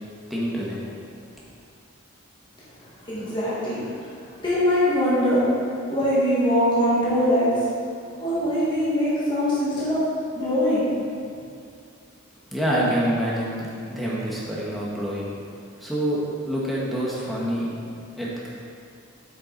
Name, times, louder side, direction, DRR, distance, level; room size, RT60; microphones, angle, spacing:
voice 1, 0.3-0.8 12.5-15.3 15.8-16.2 16.5-17.7 18.2-18.5, equal, ahead, -6 dB, 1.4 m, -26 dB
voice 2, 3.1-3.8 4.4-5.4 5.9-7.5 8.2-10.0 10.4-10.9, equal, 20° left, -10 dB, 1.8 m, -22 dB
7.6 x 6.8 x 4.1 m, 2.4 s
head